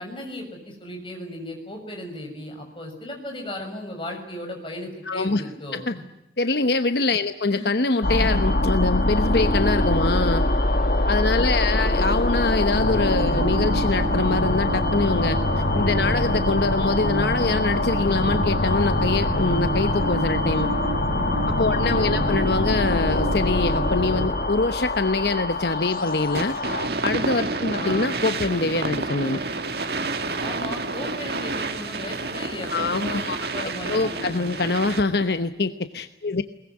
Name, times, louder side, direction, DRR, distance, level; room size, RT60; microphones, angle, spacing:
voice 1, 0.0-6.0 7.5-7.7 11.7-12.3 21.9-22.5 27.7-28.1 30.4-34.6, left 1 dB, 30° left, 2 dB, 6.8 m, -36 dB
voice 2, 5.1-5.4 5.7-5.9 6.4-10.5 11.1-15.4 15.7-20.7 21.5-26.5 27.0-29.4 32.7-36.4, left 3 dB, 65° left, 9 dB, 1.0 m, -24 dB
sound 1, 8.0-26.9, left 1 dB, 50° left, 1.8 m, -24 dB
sound 2, 12.7-24.3, right 1 dB, 90° right, 2.4 m, -30 dB
sound 3, 26.3-35.2, right 3 dB, 60° right, 2.0 m, -29 dB
22.0 x 21.0 x 9.8 m, 0.88 s
head